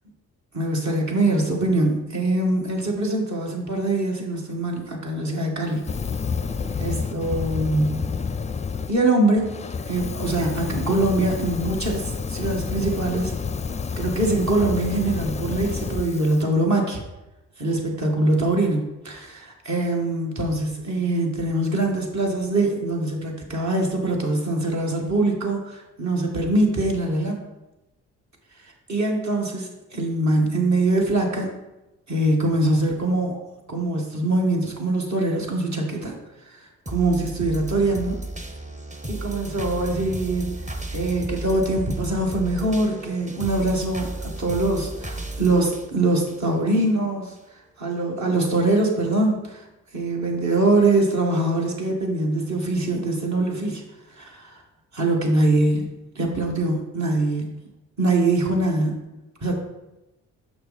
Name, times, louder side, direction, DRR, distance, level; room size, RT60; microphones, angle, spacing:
voice 1, 0.5-5.8 6.8-8.1 8.9-9.6 9.9-13.3 14.0-17.0 17.6-27.4 28.9-31.5 32.1-33.4 33.7-36.2 36.9-38.2 39.1-40.6 40.9-47.3 47.8-49.6 49.9-53.8 54.2-54.6 54.9-55.8 56.2-57.5 58.0-58.9 59.4-59.6, right 2 dB, 50° right, 0 dB, 2.0 m, -23 dB
Fire, 5.8-8.9 9.4-16.4, left 5 dB, 20° left, 0.5 m, -29 dB
sound 1, 36.8-46.9 47.4-47.5, right 1 dB, 20° right, 1.0 m, -34 dB
6.6 x 5.5 x 4.2 m, 1.0 s
hypercardioid pair, 45°, 37 cm